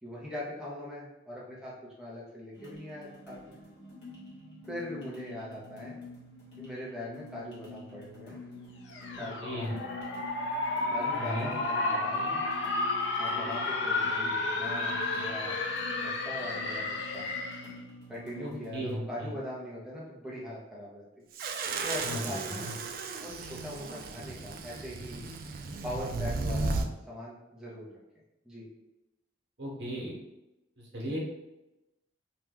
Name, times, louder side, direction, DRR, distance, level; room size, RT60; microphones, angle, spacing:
voice 1, 0.0-3.6 4.7-6.0 6.6-8.4 9.2-9.8 10.9-12.4 13.2-15.6 16.0-17.3 18.1-21.0 21.8-22.7 23.2-25.3 25.8-27.9 28.4-28.7, left 1 dB, 5° right, -7 dB, 0.7 m, -41 dB
sound 1, 2.5-19.0, left 2 dB, 60° left, 1.3 m, -47 dB
sound 2, 8.9-17.7, left 2 dB, 75° left, 0.4 m, -32 dB
voice 2, 9.4-9.7 11.1-11.5 18.4-19.3 22.0-22.2 22.5-22.7 29.6-30.2 30.8-31.2, equal, 70° right, -3 dB, 1.0 m, -36 dB
sound 3, 21.3-26.9, right 3 dB, 50° right, 0.3 m, -35 dB
2.9 x 2.3 x 3.5 m, 0.97 s
head